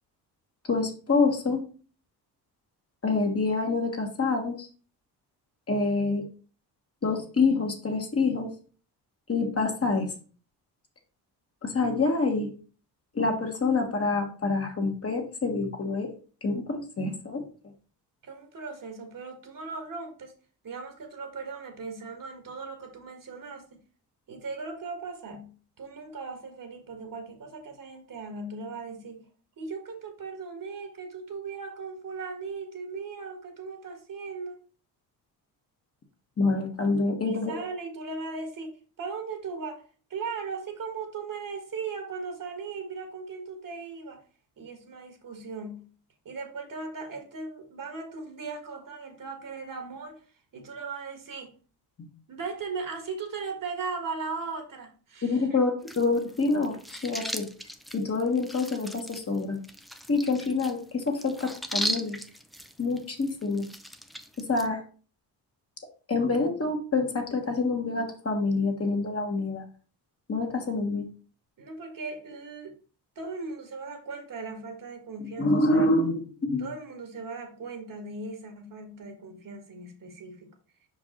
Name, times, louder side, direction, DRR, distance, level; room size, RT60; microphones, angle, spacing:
voice 1, 0.7-1.6 3.0-4.7 5.7-6.2 7.0-8.5 9.3-10.1 11.6-12.5 13.1-16.1 16.4-17.4 36.4-37.5 55.2-57.4 57.9-59.6 60.1-62.2 62.8-63.6 64.5-64.8 66.1-69.6 70.3-71.1 75.4-76.6, left 3 dB, 35° left, 2 dB, 1.6 m, -26 dB
voice 2, 18.2-20.3 20.6-23.8 24.3-25.5 25.8-29.3 29.6-34.6 37.2-39.8 40.1-44.2 44.6-45.9 46.3-50.2 50.5-51.5 52.3-55.6 71.6-72.7 73.2-75.9 76.6-80.5, right 4 dB, 50° right, 4 dB, 1.8 m, -38 dB
sound 1, 55.8-64.7, equal, ahead, 0.5 m, -38 dB
5.3 x 4.8 x 3.8 m, 0.39 s
cardioid pair, 85°, 41 cm